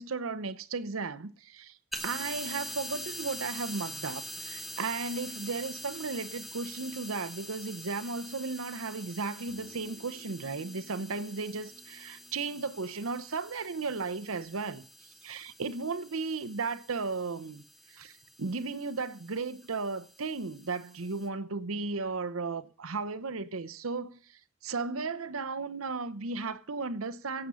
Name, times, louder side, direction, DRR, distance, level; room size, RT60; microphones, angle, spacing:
voice 1, 0.0-1.8 2.0-17.6 17.9-24.2 24.6-27.5, right 4 dB, 85° right, 0.9 m, -35 dB
sound 1, 1.9-21.3, equal, ahead, 1.2 m, -45 dB
sound 2, 9.5-14.0, equal, 65° left, 4.4 m, -56 dB
16.5 x 7.1 x 6.3 m
head